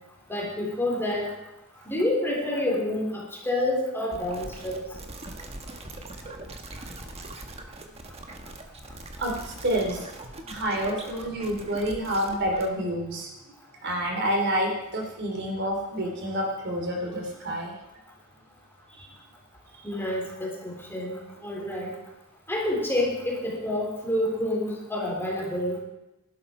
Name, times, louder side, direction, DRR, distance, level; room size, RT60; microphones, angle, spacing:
voice 1, 0.3-1.3 1.9-4.8 19.8-22.0 22.5-25.8, left 1 dB, 10° left, -2 dB, 3.7 m, -28 dB
sound 1, 4.1-12.7, right 2 dB, 30° right, 1.5 m, -42 dB
voice 2, 9.2-10.0 10.5-13.3 13.8-17.7 18.9-19.1 19.8-19.9, equal, 55° right, 0 dB, 3.3 m, -28 dB
17.0 x 12.0 x 4.5 m, 0.95 s
head